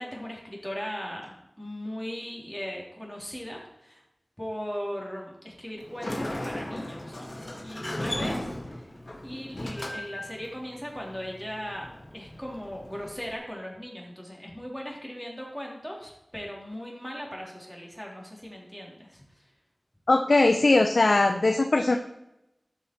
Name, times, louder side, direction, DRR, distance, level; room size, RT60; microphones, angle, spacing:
voice 1, 0.0-4.0 4.4-7.3 7.6-8.9 9.2-19.4, equal, ahead, -2 dB, 3.2 m, -38 dB
Sliding door, 5.8-13.3, left 1 dB, 45° left, 1.9 m, -37 dB
voice 2, 20.1-22.0, left 2 dB, 80° left, 5 dB, 0.7 m, -20 dB
13.0 x 5.7 x 4.6 m, 0.86 s
wide cardioid pair, 55°, 0 cm